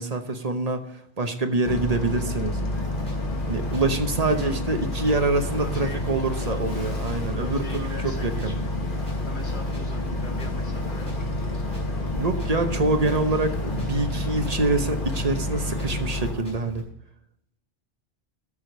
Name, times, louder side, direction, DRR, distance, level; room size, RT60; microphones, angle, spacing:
voice 1, 0.0-2.6 3.5-8.6 12.2-16.8, right 3 dB, 40° right, 6 dB, 1.0 m, -26 dB
Boat Water vehicle, 1.6-16.3, left 2 dB, 55° left, 1.6 m, -29 dB
sound 1, 2.7-16.8, equal, 15° right, 3.9 m, -42 dB
voice 2, 4.3-4.6 5.5-12.5 12.8-13.5, left 2 dB, 75° left, 0 dB, 2.4 m, -42 dB
13.5 x 6.5 x 5.2 m, 0.80 s
omnidirectional pair, 1.1 m